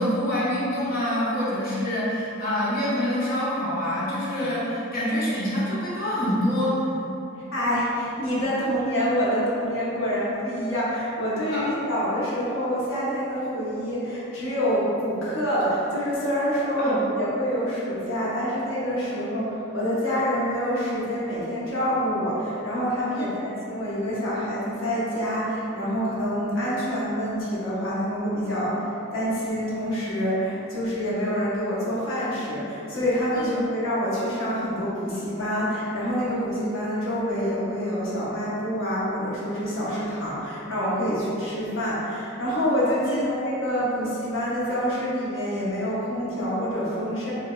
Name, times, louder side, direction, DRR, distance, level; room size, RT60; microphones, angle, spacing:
voice 1, 0.0-6.8 11.5-11.6 16.8-16.9 23.1-23.3 33.3-33.5 43.1-43.3, equal, 45° left, -8 dB, 0.9 m, -26 dB
voice 2, 7.5-47.3, equal, 80° left, -8 dB, 1.0 m, -26 dB
4.9 x 2.7 x 2.3 m, 2.8 s
head